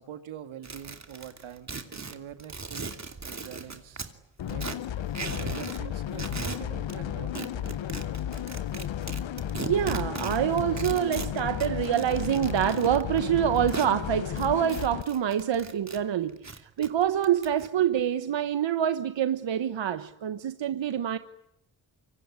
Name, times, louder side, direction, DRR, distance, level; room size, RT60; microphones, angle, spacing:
voice 1, 0.0-3.0 3.2-4.0 4.5-4.7 5.4-7.9, right 9 dB, 80° right, 2.1 m, -44 dB
sound 1, 0.6-4.1 4.5-5.8 6.1-7.0 7.4-13.9 14.4-16.0 16.3-17.7, right 4 dB, 35° right, 2.8 m, -38 dB
sound 2, 4.4-15.0, left 10 dB, 70° left, 1.1 m, -33 dB
voice 2, 9.6-21.2, right 10 dB, 65° right, 1.2 m, -26 dB
26.0 x 23.5 x 9.7 m
cardioid pair, 55°, 47 cm